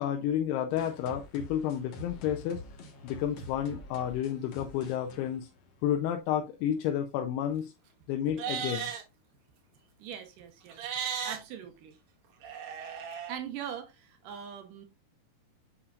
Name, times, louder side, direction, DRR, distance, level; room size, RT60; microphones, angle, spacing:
voice 1, 0.0-2.6 3.0-5.5 5.8-7.7 8.1-8.9, left 10 dB, 85° left, 2.7 m, -31 dB
sound 1, 0.8-6.2, left 1 dB, 60° left, 1.6 m, -46 dB
Livestock farm animals working animals, 8.3-9.0 10.7-11.4 12.4-13.4, right 7 dB, 85° right, 3.4 m, -35 dB
voice 2, 10.0-10.9 11.2-12.0 13.3-14.9, right 9 dB, 70° right, 2.2 m, -41 dB
8.1 x 5.7 x 2.4 m
omnidirectional pair, 4.7 m